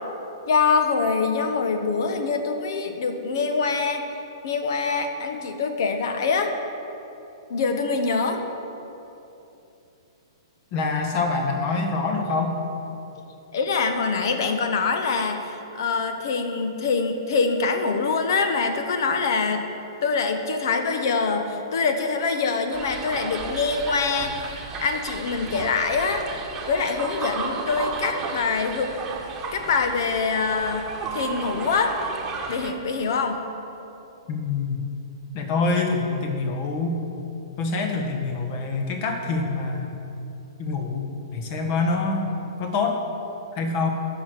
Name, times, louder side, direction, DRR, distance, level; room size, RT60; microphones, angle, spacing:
voice 1, 0.5-4.0 4.4-6.5 7.5-8.4 13.5-19.7 20.0-26.3 26.7-28.9 29.5-32.0 32.5-33.4, left 4 dB, 55° left, 6 dB, 1.2 m, -24 dB
voice 2, 10.7-12.5 34.3-34.8 35.3-37.0 37.6-39.9 40.6-42.3 42.6-43.0 43.5-43.9, left 3 dB, 40° left, 3 dB, 1.6 m, -25 dB
sound 1, 22.7-32.7, right 4 dB, 20° right, 1.4 m, -34 dB
10.5 x 6.2 x 8.0 m, 2.9 s
figure-of-eight pair, 110°, 2 cm